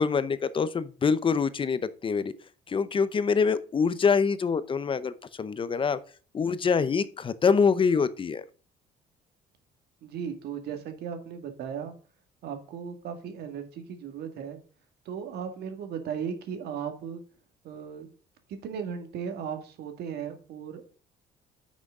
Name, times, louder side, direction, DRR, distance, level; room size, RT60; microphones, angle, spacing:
voice 1, 0.0-2.3 2.7-6.0 6.3-8.4, left 5 dB, 30° left, 0.7 m, -25 dB
voice 2, 10.0-11.9 12.4-14.6 15.1-17.2 17.6-18.1 18.6-20.9, right 7 dB, 70° right, 1.9 m, -36 dB
9.4 x 6.2 x 3.7 m
cardioid pair, 110°, 17 cm